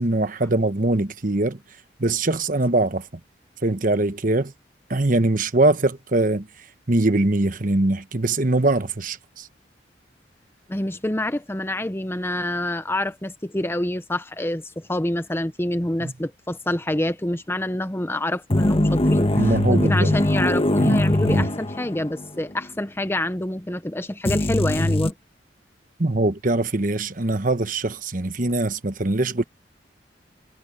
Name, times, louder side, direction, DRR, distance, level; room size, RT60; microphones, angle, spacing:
voice 1, 0.0-1.6 2.0-3.1 3.6-4.5 4.9-6.5 6.9-9.5 16.0-16.1 19.4-20.2 20.8-21.5 26.0-29.4, right 2 dB, 45° right, 1.2 m, -22 dB
voice 2, 10.7-25.1, left 1 dB, 15° left, 0.8 m, -27 dB
sound 1, 18.5-22.3 22.5-22.6 24.3-25.1, left 1 dB, 30° left, 1.3 m, -21 dB
head